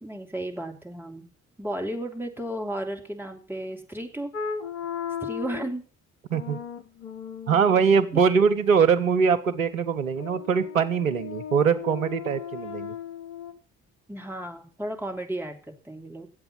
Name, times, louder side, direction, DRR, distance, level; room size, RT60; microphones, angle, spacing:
voice 1, 0.0-1.3 1.6-4.3 5.2-5.9 8.1-8.2 14.1-16.3, right 1 dB, 5° right, 2 dB, 3.0 m, -34 dB
sound 1, 4.3-5.7 6.3-8.1 10.2-13.5, left 7 dB, 75° left, 1.0 m, -36 dB
voice 2, 7.5-13.0, right 6 dB, 85° right, 10 dB, 0.7 m, -22 dB
13.0 x 7.9 x 7.2 m, 0.39 s
figure-of-eight pair, 40°, 39 cm